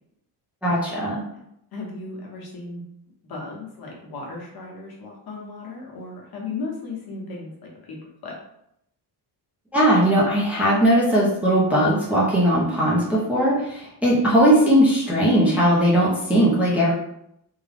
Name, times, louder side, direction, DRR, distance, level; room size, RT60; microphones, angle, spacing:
voice 1, 0.6-1.2 9.7-16.9, equal, 5° right, -7 dB, 0.6 m, -19 dB
voice 2, 1.7-2.8 3.2-8.0 8.2-8.3, left 3 dB, 55° left, -2 dB, 1.1 m, -35 dB
3.6 x 2.2 x 3.4 m, 0.76 s
cardioid pair, 180°, 43 cm